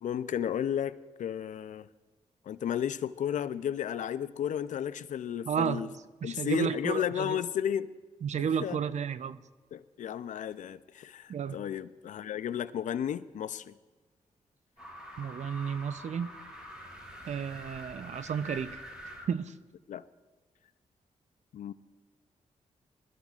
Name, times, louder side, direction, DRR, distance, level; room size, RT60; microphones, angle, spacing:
voice 1, 0.0-1.9 2.5-5.9 6.2-7.9 8.4-8.8 9.7-13.7 19.9-20.0 21.5-21.7, left 9 dB, 80° left, 0.5 m, -33 dB
voice 2, 5.5-5.9 6.2-7.4 8.2-9.4 11.3-11.6 15.2-16.3 17.3-18.8 19.3-19.5, right 7 dB, 65° right, 0.6 m, -32 dB
sound 1, 14.8-19.3, equal, 5° right, 4.8 m, -46 dB
20.0 x 13.0 x 2.4 m
cardioid pair, 75°, 13 cm